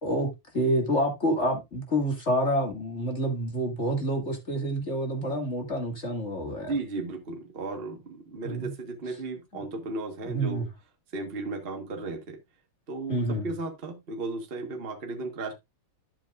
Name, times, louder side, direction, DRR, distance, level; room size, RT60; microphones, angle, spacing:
voice 1, 0.5-6.7 8.4-8.7 10.2-10.7 13.1-13.5, equal, 35° left, 2.4 m, -28 dB
voice 2, 6.5-10.6 11.1-12.4 12.9-15.5, right 3 dB, 30° right, 1.5 m, -35 dB
12.0 x 6.9 x 2.5 m
omnidirectional pair, 2.3 m